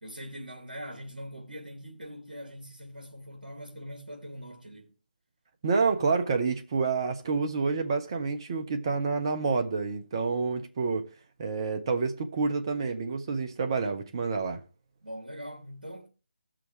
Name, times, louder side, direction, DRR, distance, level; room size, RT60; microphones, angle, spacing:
voice 1, 0.0-4.9 13.8-14.0 15.0-16.1, equal, 70° right, 2.8 m, -42 dB
voice 2, 5.6-11.1 11.4-14.6, right 4 dB, 30° right, 1.2 m, -28 dB
17.0 x 6.3 x 3.3 m
figure-of-eight pair, 155°, 5 cm